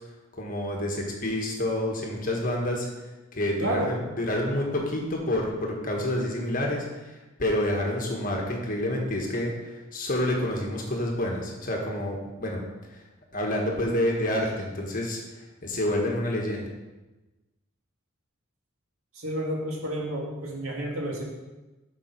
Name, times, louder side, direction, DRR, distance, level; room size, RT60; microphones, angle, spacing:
voice 1, 0.3-2.9 3.3-12.6 12.9-13.0 13.3-15.2 15.6-16.7, left 1 dB, 40° left, 0 dB, 1.4 m, -28 dB
voice 2, 3.6-3.9 19.2-21.2, right 1 dB, 85° right, -1 dB, 2.0 m, -30 dB
7.4 x 5.0 x 5.7 m, 1.1 s
head